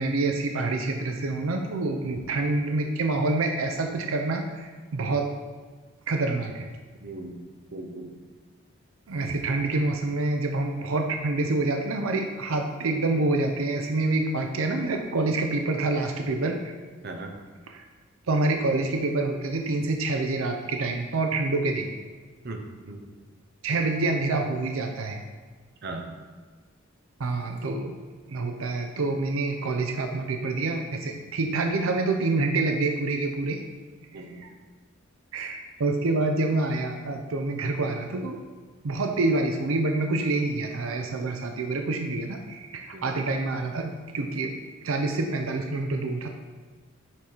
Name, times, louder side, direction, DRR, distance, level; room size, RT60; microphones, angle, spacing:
voice 1, 0.0-5.3 6.1-6.7 9.1-16.7 17.7-17.8 18.3-21.9 23.6-25.2 27.2-27.9 28.3-33.6 34.1-34.5 35.3-38.4 38.8-44.6 44.8-46.3, right 2 dB, 85° right, 4 dB, 0.6 m, -27 dB
voice 2, 7.0-7.4 7.7-8.1 17.0-17.3 22.4-23.1 25.8-26.1 34.1-34.5 42.9-43.1, right 2 dB, 50° right, 3 dB, 0.7 m, -38 dB
5.9 x 4.8 x 4.4 m, 1.4 s
head